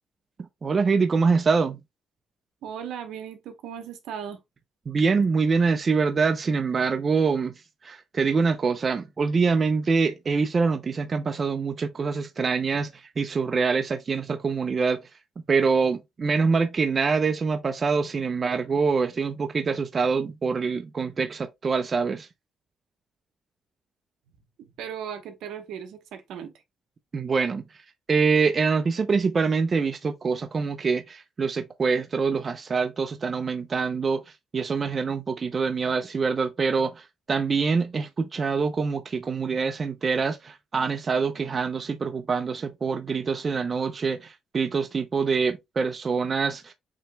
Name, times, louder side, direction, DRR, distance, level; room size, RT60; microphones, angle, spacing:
voice 1, 0.6-1.8 4.9-7.5 7.8-15.0 15.5-22.3 27.1-27.6 28.1-34.2 34.5-46.7, right 5 dB, 40° right, 0.6 m, -25 dB
voice 2, 2.6-4.4 24.6-26.5, right 8 dB, 85° right, 1.0 m, -37 dB
7.3 x 3.0 x 2.2 m
cardioid pair, 90°, 0 cm